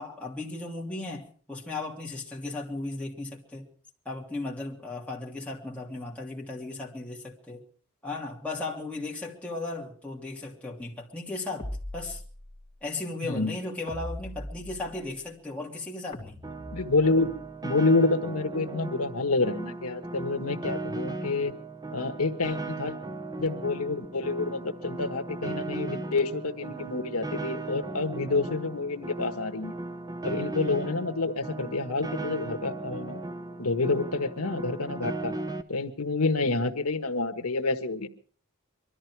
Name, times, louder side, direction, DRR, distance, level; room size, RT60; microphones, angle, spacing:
voice 1, 0.0-3.7 4.0-7.6 8.0-11.7 11.9-12.2 12.8-16.4, left 2 dB, 5° left, -3 dB, 2.8 m, -36 dB
sound 1, 11.6-12.7 13.9-15.1 16.1-17.4, left 1 dB, 20° left, 2.4 m, -40 dB
voice 2, 13.2-13.6 16.7-17.3 17.6-21.6 21.9-22.9 23.4-29.7 30.2-33.2 33.6-35.3 35.7-38.1, left 3 dB, 85° left, 5 dB, 1.4 m, -28 dB
Piano, 16.4-35.6, right 2 dB, 15° right, 0.7 m, -37 dB
23.0 x 13.0 x 4.6 m, 0.43 s
head